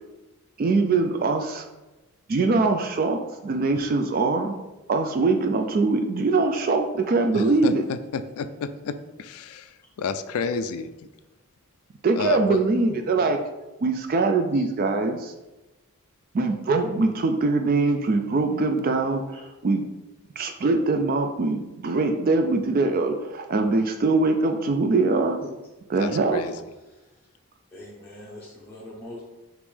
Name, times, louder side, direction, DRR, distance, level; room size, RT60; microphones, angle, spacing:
voice 1, 0.6-1.7 2.3-4.5 4.9-7.8 12.0-13.4 13.8-15.3 16.3-19.8 20.4-25.4 25.9-26.4, right 3 dB, 40° right, 5 dB, 0.3 m, -23 dB
voice 2, 7.3-10.9 12.2-12.6 26.0-26.5, left 5 dB, 75° left, 11 dB, 0.3 m, -31 dB
voice 3, 26.8-27.3 27.7-29.3, left 1 dB, 10° left, -6 dB, 0.6 m, -43 dB
5.1 x 3.0 x 3.3 m, 1.1 s
head